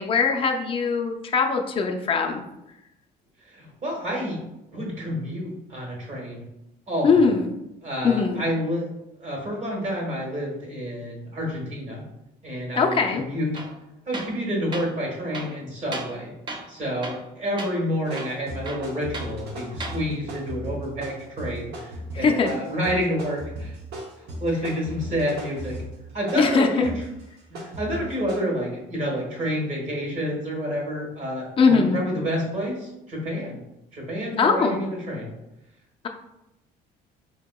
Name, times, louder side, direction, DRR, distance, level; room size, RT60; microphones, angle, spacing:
voice 1, 0.0-2.4 7.0-7.5 8.0-8.4 12.8-13.2 22.1-22.5 26.3-26.7 31.6-32.0 34.4-34.8, left 5 dB, 30° left, 3 dB, 0.5 m, -21 dB
voice 2, 3.4-4.4 4.7-6.5 6.9-7.1 7.8-8.9 9.2-12.0 12.4-13.6 14.1-16.3 16.7-23.8 24.2-25.8 26.1-26.9 27.5-33.6 33.9-35.3, equal, 45° right, -1 dB, 1.4 m, -29 dB
Tools, 13.5-13.8 14.1-14.4 14.7-14.9 15.3-16.2 16.5-16.7 17.0-17.3 17.6-17.7 18.1-19.3 19.7-20.0, right 2 dB, 25° right, 0.5 m, -35 dB
sound 1, 18.1-28.4, equal, 80° right, 0.9 m, -37 dB
4.6 x 2.8 x 2.2 m, 0.90 s
cardioid pair, 110°, 17 cm